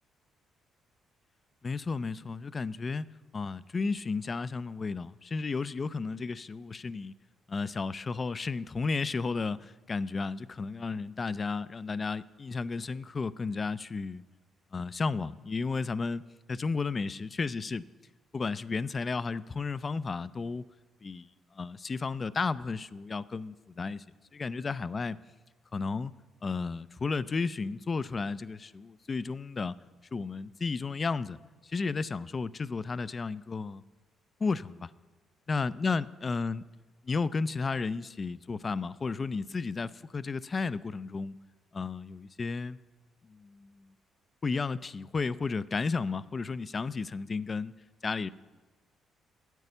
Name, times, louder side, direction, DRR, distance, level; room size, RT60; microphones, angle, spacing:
voice 1, 1.6-7.1 7.5-14.2 14.7-16.2 16.5-17.8 18.3-20.7 21.0-24.0 24.3-25.2 25.7-26.1 26.4-29.7 30.1-31.4 31.6-33.8 34.4-34.9 35.5-36.6 37.0-41.3 41.7-42.8 43.2-43.9 44.4-47.7 48.0-48.3, left 4 dB, 35° left, 18 dB, 0.4 m, -33 dB
9.2 x 8.7 x 6.8 m, 1.3 s
cardioid pair, 90°, 0 cm